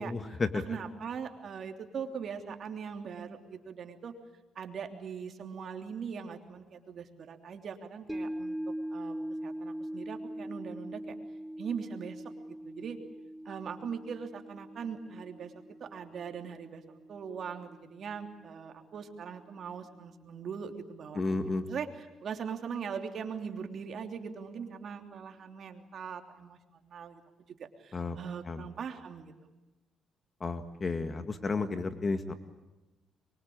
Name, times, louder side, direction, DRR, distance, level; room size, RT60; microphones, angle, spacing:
voice 1, 0.0-0.6 21.1-21.6 27.9-28.2 28.5-28.6 30.4-32.3, left 3 dB, 35° left, 9 dB, 1.8 m, -32 dB
voice 2, 0.5-4.1 4.5-8.6 8.9-11.1 11.6-12.2 12.6-13.0 13.4-27.2 27.5-29.3, right 6 dB, 60° right, 5 dB, 3.2 m, -41 dB
sound 1, 8.1-18.5 18.8-18.9, right 1 dB, ahead, 2.7 m, -42 dB
24.5 x 23.5 x 8.8 m, 1.1 s
cardioid pair, 90°, 0 cm